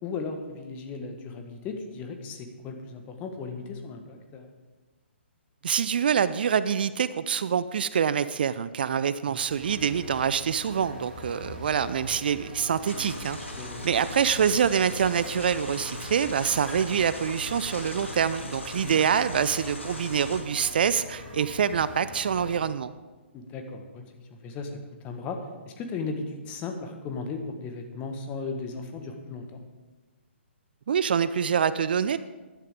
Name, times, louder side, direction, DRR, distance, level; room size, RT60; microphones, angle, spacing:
voice 1, 0.0-4.5 9.3-9.4 13.6-13.9 18.8-19.0 23.3-24.1 24.4-24.8 25.0-29.6, left 4 dB, 20° left, 5 dB, 1.4 m, -36 dB
voice 2, 5.6-13.4 13.8-22.9 30.9-32.2, right 7 dB, 50° right, 15 dB, 0.4 m, -25 dB
sound 1, 9.5-22.6, left 2 dB, ahead, 3.3 m, -43 dB
sound 2, 12.8-20.4, left 1 dB, 85° left, 2.2 m, -39 dB
15.5 x 11.0 x 3.8 m, 1.3 s
figure-of-eight pair, 130°, 7 cm